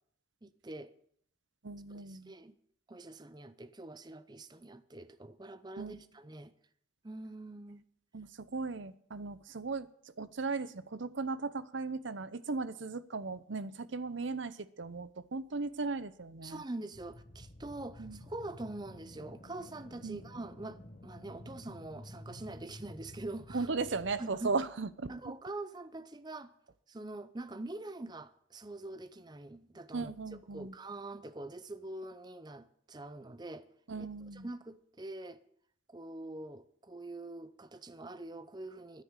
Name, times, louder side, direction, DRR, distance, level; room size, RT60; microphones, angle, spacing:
voice 1, 0.4-0.9 2.1-2.5 2.9-6.5 7.0-7.8 16.4-23.7 24.2-24.6 25.1-26.5 26.9-33.7 34.0-34.1 34.3-35.4 35.9-39.0, right 2 dB, 20° right, 0.6 m, -44 dB
voice 2, 1.6-2.3 5.8-6.0 8.1-9.9 10.2-16.6 18.0-18.2 20.0-20.2 23.5-25.3 29.9-30.8 33.9-34.5, right 4 dB, 70° right, 0.7 m, -37 dB
sound 1, 16.9-24.2, left 1 dB, 40° left, 1.2 m, -51 dB
10.5 x 9.9 x 8.9 m
head